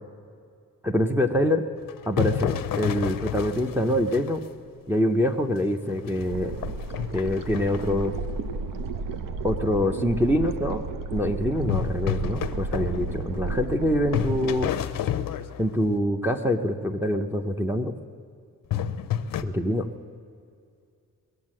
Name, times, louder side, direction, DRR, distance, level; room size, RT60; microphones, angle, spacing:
voice 1, 0.8-1.6 2.1-4.4 4.9-6.6 7.1-8.1 9.4-10.8 11.1-14.7 15.6-17.9 19.4-19.9, equal, 5° right, 2 dB, 0.6 m, -25 dB
sound 1, 1.8-4.6 5.1-5.2 5.7-8.0 11.7-13.8 14.1-15.9 18.7-19.4, left 9 dB, 75° left, 0.7 m, -30 dB
sound 2, 6.2-14.6, right 3 dB, 70° right, 0.8 m, -33 dB
21.0 x 8.2 x 7.5 m, 2.3 s
wide cardioid pair, 145°, 34 cm